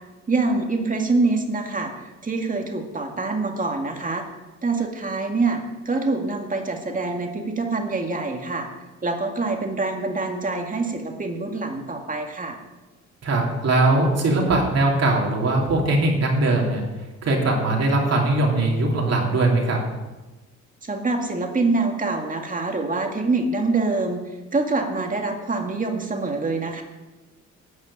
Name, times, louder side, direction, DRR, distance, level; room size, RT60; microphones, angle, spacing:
voice 1, 0.3-1.9 2.2-4.2 4.6-8.7 9.0-12.6 20.8-24.2 24.5-26.8, right 3 dB, 25° right, 3 dB, 2.0 m, -25 dB
voice 2, 13.2-16.8 17.2-19.8, right 2 dB, 55° right, -1 dB, 3.3 m, -20 dB
11.0 x 6.3 x 9.1 m, 1.2 s
cardioid pair, 90°, 30 cm